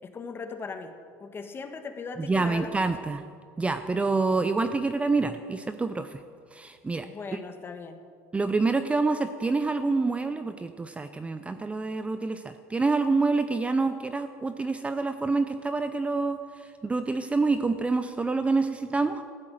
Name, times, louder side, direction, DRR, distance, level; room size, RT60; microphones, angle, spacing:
voice 1, 0.0-2.8 7.0-8.1, left 4 dB, 25° left, 7 dB, 1.4 m, -39 dB
voice 2, 2.2-3.2 3.6-6.2 6.5-7.1 8.3-16.4 16.8-19.2, right 3 dB, 15° right, 9 dB, 0.6 m, -27 dB
14.0 x 8.9 x 7.7 m, 2.2 s
supercardioid pair, 110°, 8 cm